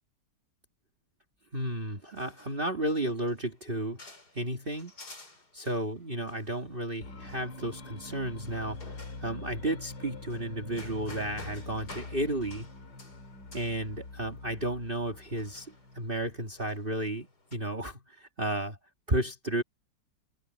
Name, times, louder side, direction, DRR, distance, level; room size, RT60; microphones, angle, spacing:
voice 1, 1.5-4.1 4.3-4.9 5.5-8.9 9.2-12.7 13.5-15.7 15.9-18.8 19.1-19.6, right 1 dB, 30° right, 2.4 m, -33 dB
sound 1, 1.6-17.6, left 2 dB, 60° left, 5.6 m, -53 dB
sound 2, 7.0-16.6, left 3 dB, 80° left, 3.4 m, -44 dB
omnidirectional pair, 1.9 m